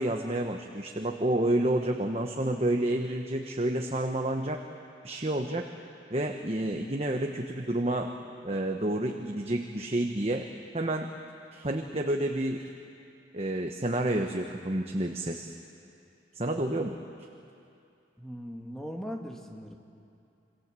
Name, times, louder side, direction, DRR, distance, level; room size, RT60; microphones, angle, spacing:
voice 1, 0.0-4.6 5.0-5.7 6.1-8.1 8.4-10.5 10.7-11.1 11.5-12.6 13.3-15.5 16.3-17.0, right 1 dB, 35° right, 3 dB, 1.1 m, -29 dB
voice 2, 18.2-19.8, equal, 5° left, 2 dB, 1.8 m, -39 dB
27.0 x 25.0 x 7.6 m, 2.7 s
head